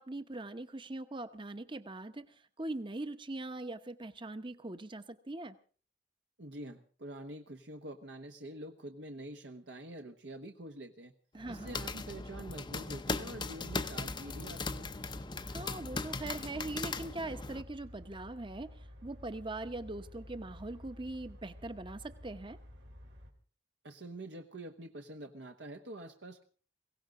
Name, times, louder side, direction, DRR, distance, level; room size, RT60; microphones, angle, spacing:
voice 1, 0.0-5.6 11.3-11.8 15.4-22.6, right 2 dB, 25° right, 11 dB, 1.0 m, -41 dB
voice 2, 6.4-11.1 11.5-14.9 23.8-26.4, right 1 dB, 70° right, 4 dB, 1.2 m, -46 dB
sound 1, 11.4-17.6, left 3 dB, 25° left, 0.7 m, -39 dB
sound 2, 13.5-23.3, equal, 90° right, 3.8 m, -51 dB
22.0 x 17.0 x 3.8 m, 0.40 s
head